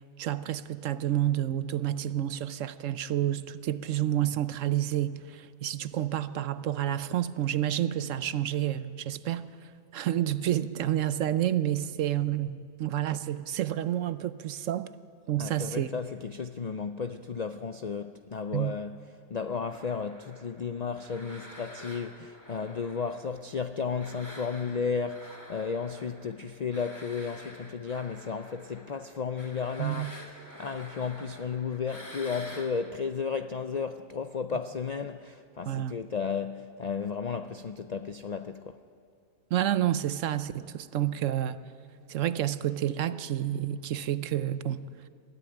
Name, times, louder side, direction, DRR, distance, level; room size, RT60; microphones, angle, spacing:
voice 1, 0.2-9.5 9.9-14.9 15.3-15.9 18.5-18.8 29.8-30.1 35.7-36.0 39.5-41.6 42.1-44.8, right 12 dB, 70° right, 1.0 m, -29 dB
voice 2, 15.4-19.0 19.3-30.1 30.6-38.8, left 5 dB, 60° left, 0.4 m, -33 dB
sound 1, 19.7-23.6 24.0-32.7, equal, 15° left, 2.6 m, -48 dB
22.0 x 15.0 x 9.0 m
omnidirectional pair, 1.4 m